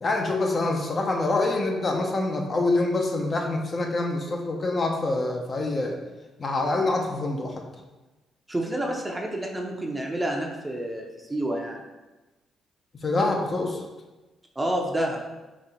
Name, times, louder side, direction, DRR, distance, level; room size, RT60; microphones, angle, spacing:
voice 1, 0.0-6.0 6.4-7.6 13.0-13.8, left 2 dB, 40° left, 1 dB, 0.6 m, -25 dB
voice 2, 8.5-11.8 14.6-15.2, right 1 dB, 15° right, 1 dB, 0.7 m, -29 dB
4.1 x 2.7 x 4.2 m, 1.1 s
cardioid pair, 90°, 0 cm